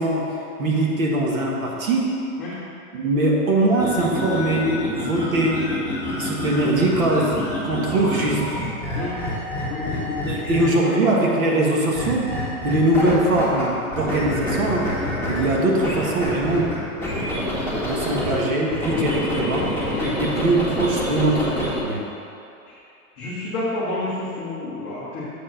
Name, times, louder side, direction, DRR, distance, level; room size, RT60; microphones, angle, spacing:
voice 1, 0.0-2.2 2.9-5.7 6.2-8.4 10.2-12.3 12.6-14.9 15.3-16.6 17.8-19.7 20.2-22.0, right 2 dB, 65° right, -2 dB, 1.7 m, -22 dB
sound 1, 3.7-10.9 11.9-13.6 13.9-18.4 18.7-21.8, left 1 dB, 20° right, 2.0 m, -27 dB
voice 2, 9.7-11.1 18.9-19.2 19.9-20.2 22.7-22.8 23.2-25.2, left 2 dB, 15° left, -10 dB, 0.6 m, -30 dB
7.4 x 4.7 x 5.7 m, 2.6 s
hypercardioid pair, 175°, 44 cm